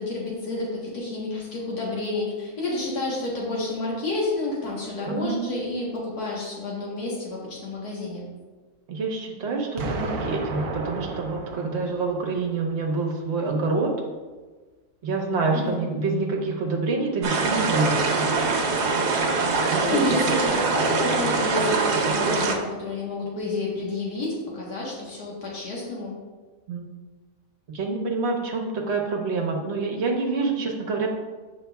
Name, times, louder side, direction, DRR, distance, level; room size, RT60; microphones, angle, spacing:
voice 1, 0.0-8.2 15.5-15.9 19.6-26.1, left 2 dB, 75° left, -4 dB, 1.8 m, -30 dB
voice 2, 5.1-5.4 8.9-13.9 15.0-18.4 19.7-20.1 26.7-26.8 27.7-31.1, right 3 dB, 50° right, 0 dB, 1.1 m, -27 dB
Explosion, 9.8-12.7, right 2 dB, 65° right, 1.1 m, -33 dB
sound 1, 17.2-22.6, right 4 dB, 85° right, 1.3 m, -23 dB
7.7 x 5.9 x 2.3 m, 1.3 s
omnidirectional pair, 1.7 m